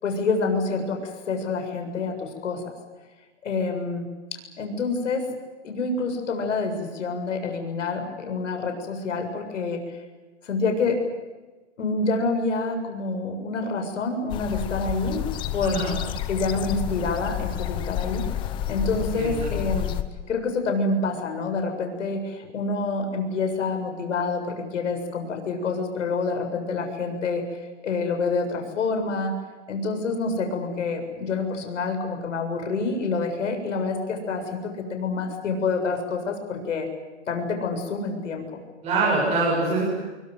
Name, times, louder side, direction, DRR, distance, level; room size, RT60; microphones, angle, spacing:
voice 1, 0.0-2.6 3.4-5.3 5.6-9.8 10.4-11.0 11.8-15.2 15.5-15.8 16.3-18.3 18.7-19.9 20.3-27.4 27.8-29.4 29.7-36.9 37.3-38.6, left 3 dB, 80° left, 5 dB, 7.3 m, -27 dB
sound 1, 14.3-20.0, left 12 dB, 15° left, 0.8 m, -30 dB
voice 2, 15.6-15.9 19.1-19.5 38.8-39.8, right 3 dB, 15° right, -5 dB, 7.7 m, -24 dB
25.0 x 24.0 x 8.0 m, 1.3 s
hypercardioid pair, 170°, 36 cm